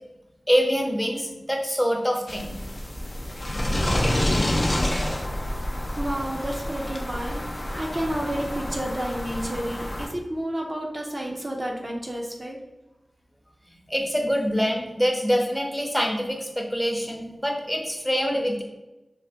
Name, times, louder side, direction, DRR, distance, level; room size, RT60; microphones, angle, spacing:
voice 1, 0.5-2.5 13.9-18.6, equal, 10° left, 0 dB, 0.6 m, -25 dB
sound 1, 2.3-10.1, left 1 dB, 45° left, 0.4 m, -28 dB
voice 2, 6.0-12.6, right 1 dB, 35° right, -1 dB, 0.4 m, -31 dB
2.6 x 2.0 x 3.3 m, 1.0 s
cardioid pair, 45°, 0 cm